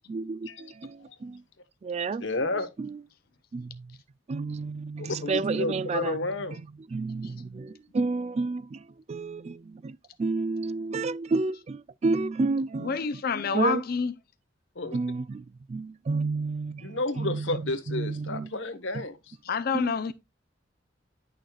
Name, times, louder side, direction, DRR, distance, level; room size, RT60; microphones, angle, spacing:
voice 1, 0.1-1.4 1.8-2.2 2.8-3.0 3.5-3.8 4.3-6.2 6.9-8.8 9.1-9.9 10.2-13.0 13.5-13.8 14.9-15.4 15.7-18.5 19.7-19.9, right 3 dB, 35° right, 0.3 m, -30 dB
voice 2, 2.2-2.7 5.0-6.6 14.8-15.0 16.8-19.2, left 2 dB, 85° left, 1.2 m, -31 dB
voice 3, 12.8-14.1 19.4-20.1, left 5 dB, 55° left, 0.5 m, -27 dB
10.5 x 6.4 x 2.3 m
head